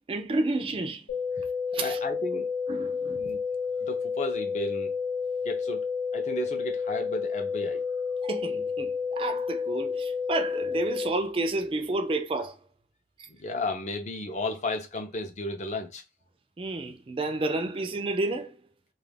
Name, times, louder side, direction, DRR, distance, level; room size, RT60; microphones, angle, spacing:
voice 1, 0.1-1.0 1.7-2.0 2.7-3.2 8.2-12.6 13.2-13.3 16.6-18.6, right 2 dB, 30° right, 0.3 m, -30 dB
sound 1, 1.1-11.1, left 5 dB, 70° left, 0.7 m, -30 dB
voice 2, 1.8-2.5 3.1-3.4 3.8-4.9 5.4-7.8 13.3-16.0, left 2 dB, 40° left, 0.5 m, -34 dB
2.3 x 2.1 x 3.3 m
head